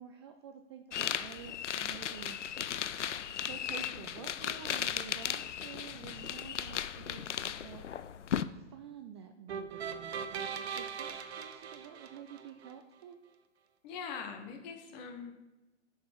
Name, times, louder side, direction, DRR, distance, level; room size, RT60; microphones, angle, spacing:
voice 1, 0.0-2.4 3.3-7.8 8.5-13.2, right 8 dB, 25° right, 6 dB, 0.4 m, -50 dB
sound 1, 0.9-8.4, left 9 dB, 80° left, 0.5 m, -36 dB
sound 2, 9.5-12.7, right 6 dB, 65° right, 0.9 m, -40 dB
voice 2, 13.8-15.3, left 6 dB, 35° left, 4 dB, 1.5 m, -42 dB
7.2 x 6.6 x 4.5 m, 1.1 s
figure-of-eight pair, 115°, 35 cm